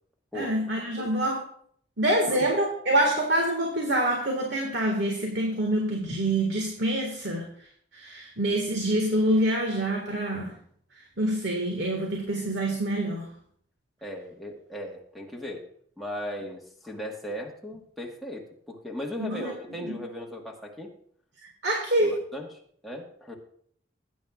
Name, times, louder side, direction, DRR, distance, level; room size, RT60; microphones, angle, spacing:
voice 1, 0.3-1.4 2.0-7.5 7.9-10.5 11.2-13.3 19.2-19.5 19.8-20.0 21.6-22.1, right 1 dB, 60° right, 1 dB, 1.8 m, -26 dB
voice 2, 14.0-15.7 16.0-20.9 22.0-23.3, equal, ahead, -2 dB, 1.4 m, -37 dB
18.0 x 9.2 x 2.4 m, 0.63 s
head